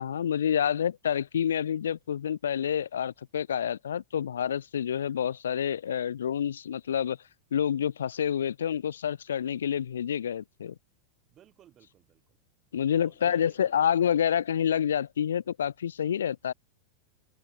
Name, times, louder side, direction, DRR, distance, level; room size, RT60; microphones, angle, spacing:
voice 1, 0.0-7.2 7.5-10.7 12.7-16.5, left 9 dB, 65° left, 0.6 m, -28 dB
voice 2, 11.3-12.4 12.9-13.8, right 11 dB, 30° right, 5.3 m, -57 dB
figure-of-eight pair, 90°, 0 cm